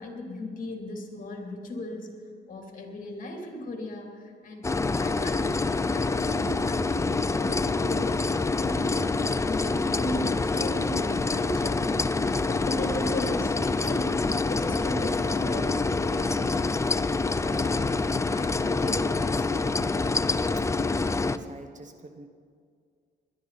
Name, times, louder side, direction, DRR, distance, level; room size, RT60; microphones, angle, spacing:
voice 1, 0.0-4.7 5.0-17.7 18.3-20.1, left 1 dB, 40° left, 1 dB, 2.9 m, -37 dB
sound 1, 4.6-21.4, left 3 dB, 15° left, 0.5 m, -26 dB
voice 2, 20.6-22.3, right 2 dB, 40° right, 7 dB, 1.2 m, -45 dB
20.0 x 12.0 x 4.1 m, 2.1 s
cardioid pair, 90°, 20 cm